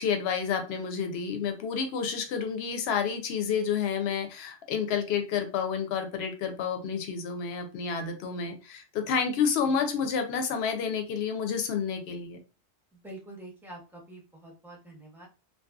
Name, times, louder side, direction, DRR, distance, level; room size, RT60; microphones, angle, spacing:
voice 1, 0.0-12.4, left 6 dB, 70° left, 5 dB, 0.8 m, -30 dB
voice 2, 12.9-15.3, right 1 dB, ahead, -2 dB, 0.6 m, -46 dB
2.7 x 2.3 x 2.3 m, 0.31 s
omnidirectional pair, 1.2 m